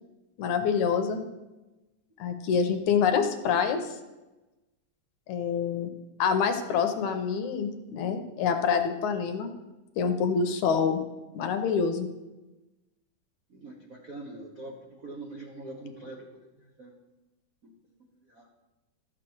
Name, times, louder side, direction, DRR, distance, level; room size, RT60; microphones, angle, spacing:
voice 1, 0.4-1.2 2.2-3.8 5.3-5.9 6.2-9.5 10.0-11.0 11.3-12.1, left 6 dB, 75° left, 6 dB, 2.1 m, -26 dB
voice 2, 13.5-16.3 16.8-16.9 17.6-17.7 18.3-18.5, right 2 dB, 70° right, -1 dB, 0.8 m, -43 dB
13.5 x 7.5 x 4.7 m, 1.1 s
omnidirectional pair, 3.7 m